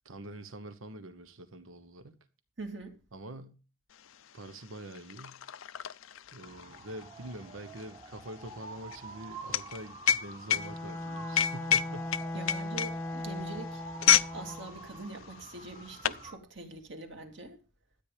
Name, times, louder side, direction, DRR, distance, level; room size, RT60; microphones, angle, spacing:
voice 1, 0.0-2.2 3.1-3.6 4.3-5.4 6.3-12.6, right 1 dB, 90° right, 1.3 m, -45 dB
voice 2, 2.6-3.0 12.3-13.8 14.3-17.6, right 2 dB, 65° right, 2.5 m, -43 dB
sound 1, 4.1-4.2 4.4-14.4 14.7-14.9 15.6-16.3, left 9 dB, 90° left, 0.6 m, -29 dB
sound 2, 6.4-16.4, right 3 dB, 30° right, 1.1 m, -49 dB
Bowed string instrument, 10.5-14.8, left 1 dB, 10° left, 0.5 m, -38 dB
13.0 x 9.0 x 5.1 m
head